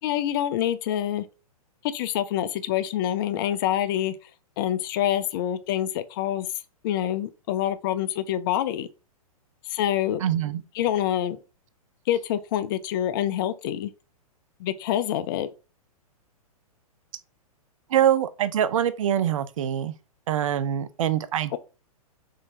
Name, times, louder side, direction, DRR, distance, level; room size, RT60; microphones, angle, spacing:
voice 1, 0.0-1.3 1.8-4.1 4.6-6.5 6.8-8.9 9.6-10.2 10.8-11.4 12.1-13.9 14.6-15.5 21.5-21.6, left 11 dB, 35° left, 0.4 m, -26 dB
voice 2, 10.2-10.6 17.9-19.9 20.3-21.6, right 10 dB, 60° right, 0.4 m, -24 dB
3.8 x 3.1 x 2.6 m
figure-of-eight pair, 110°, 19 cm